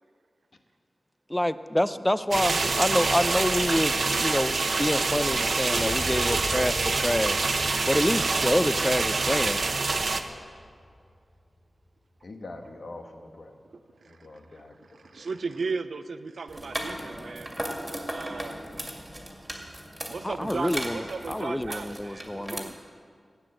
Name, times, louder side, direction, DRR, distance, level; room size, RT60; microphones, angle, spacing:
voice 1, 1.3-7.5 7.9-9.6 20.2-22.7, left 1 dB, 10° left, 14 dB, 0.5 m, -27 dB
sound 1, 2.3-10.2, right 3 dB, 65° right, 0.9 m, -26 dB
sound 2, 5.7-11.4, left 1 dB, 25° left, 2.8 m, -40 dB
voice 2, 12.2-13.5 14.1-14.8 15.2-15.3, left 2 dB, 65° left, 5 dB, 1.3 m, -43 dB
voice 3, 14.0-17.6 18.1-18.5 20.1-22.8, right 4 dB, 85° right, 10 dB, 0.5 m, -36 dB
sound 3, 16.5-22.6, right 1 dB, 10° right, 2.2 m, -37 dB
15.5 x 9.4 x 7.6 m, 2.3 s
wide cardioid pair, 110°, 0 cm